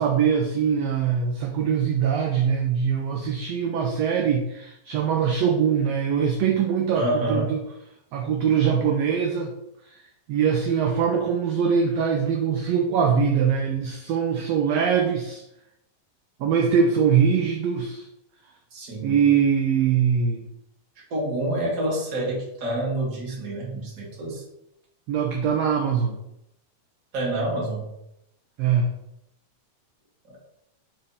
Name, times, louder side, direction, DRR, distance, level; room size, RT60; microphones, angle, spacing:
voice 1, 0.0-7.6 8.1-9.5 9.9-10.0 10.3-15.4 16.4-18.1 19.0-20.4 25.1-26.2 28.6-28.9, right 7 dB, 75° right, 2 dB, 1.5 m, -22 dB
voice 2, 6.9-7.5 18.7-19.2 21.0-24.4 27.1-27.9, right 1 dB, 35° right, -3 dB, 1.7 m, -27 dB
6.6 x 3.3 x 5.6 m, 0.82 s
omnidirectional pair, 3.7 m